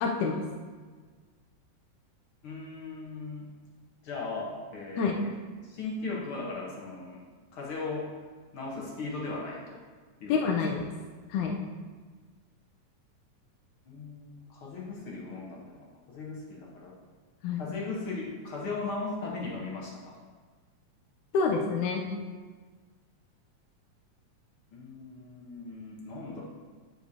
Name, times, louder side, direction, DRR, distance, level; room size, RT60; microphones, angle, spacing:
voice 1, 0.0-0.5 5.0-5.2 10.3-10.9 11.3-11.6 17.4-17.7 21.3-22.1, left 5 dB, 85° left, 1 dB, 2.0 m, -27 dB
voice 2, 2.4-3.5 4.0-5.3 5.6-7.2 7.5-8.1 8.5-9.8 10.2-10.4 13.9-15.8 16.1-16.9 17.5-20.2 24.7-26.4, left 3 dB, 55° left, -3 dB, 1.6 m, -37 dB
9.0 x 6.5 x 2.8 m, 1.5 s
omnidirectional pair, 3.4 m